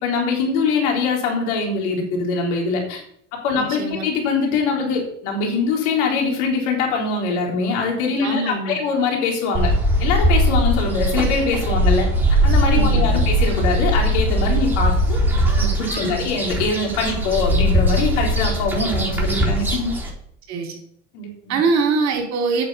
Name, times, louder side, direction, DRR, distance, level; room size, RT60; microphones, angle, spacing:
voice 1, 0.0-3.0 3.3-9.7 10.0-12.1 12.4-15.2 15.6-19.9 21.1-21.6, left 4 dB, 70° left, 1 dB, 3.7 m, -23 dB
voice 2, 3.5-4.0 8.2-8.8 12.7-13.3 16.0-16.3 20.5-20.8 21.5-22.6, right 4 dB, 45° right, 1 dB, 4.1 m, -23 dB
sound 1, 9.5-20.1, equal, 5° right, 4.0 m, -20 dB
8.7 x 6.7 x 6.9 m, 0.66 s
hypercardioid pair, 95°, 36 cm